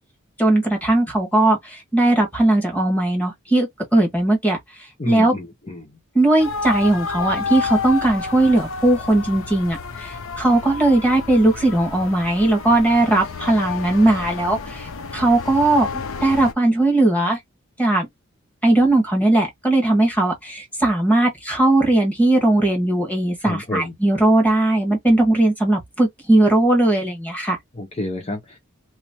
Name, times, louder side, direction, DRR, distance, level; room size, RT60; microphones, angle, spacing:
voice 1, 0.4-4.6 5.0-5.3 6.1-15.9 16.2-17.4 17.8-18.1 18.6-27.6, right 2 dB, 10° left, 1.5 m, -18 dB
voice 2, 5.0-5.9 23.4-23.9 27.7-28.6, left 2 dB, 30° left, 0.7 m, -29 dB
sound 1, 6.4-16.5, left 5 dB, 80° left, 0.7 m, -30 dB
3.0 x 3.0 x 2.9 m
head